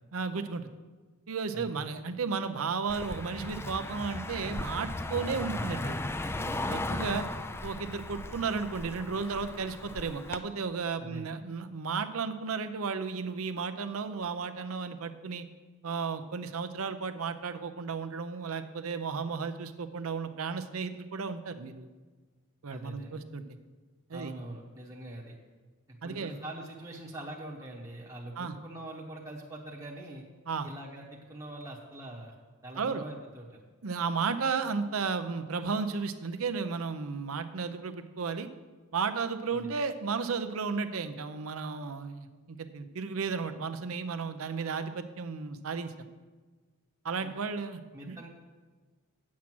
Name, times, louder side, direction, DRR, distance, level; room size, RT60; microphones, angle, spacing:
voice 1, 0.1-0.6 1.3-6.0 6.3-7.3 7.6-15.5 15.8-21.9 22.6-23.4 24.1-24.3 26.0-26.4 28.4-28.6 30.5-30.7 32.8-33.0 33.8-38.5 38.9-45.9 47.0-48.2, right 5 dB, 70° right, 9 dB, 0.6 m, -34 dB
voice 2, 1.5-2.0 11.0-11.3 22.7-23.2 24.1-25.3 25.9-30.2 30.6-32.3 32.6-33.6 39.5-39.7 47.2-47.3 47.9-48.3, right 1 dB, 15° right, -3 dB, 0.9 m, -43 dB
Car passing by, 2.9-10.4, left 2 dB, 10° left, 0.3 m, -36 dB
8.5 x 7.4 x 6.0 m, 1.3 s
head